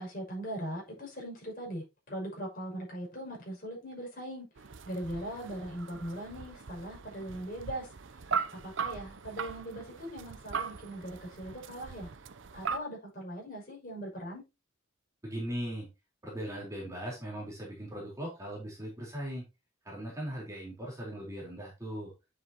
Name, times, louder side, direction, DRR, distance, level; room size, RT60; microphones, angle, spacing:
voice 1, 0.0-4.5 4.8-7.9 8.6-12.1 12.5-14.4, right 1 dB, 45° left, 6.3 m, -40 dB
sound 1, 4.6-12.8, right 6 dB, 65° right, 0.7 m, -39 dB
voice 2, 15.2-15.9 16.2-19.5 19.8-22.1, equal, 15° right, 4.0 m, -39 dB
9.8 x 7.9 x 2.9 m
head